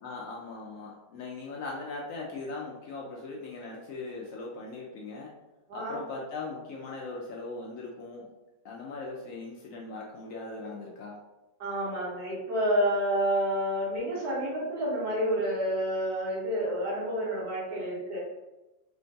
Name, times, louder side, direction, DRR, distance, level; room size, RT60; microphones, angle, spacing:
voice 1, 0.0-5.3 5.7-8.3 8.6-11.2, left 3 dB, 70° left, -3 dB, 0.9 m, -39 dB
voice 2, 11.6-18.2, equal, 75° right, -8 dB, 1.7 m, -29 dB
3.7 x 2.2 x 2.6 m, 1.0 s
omnidirectional pair, 1.6 m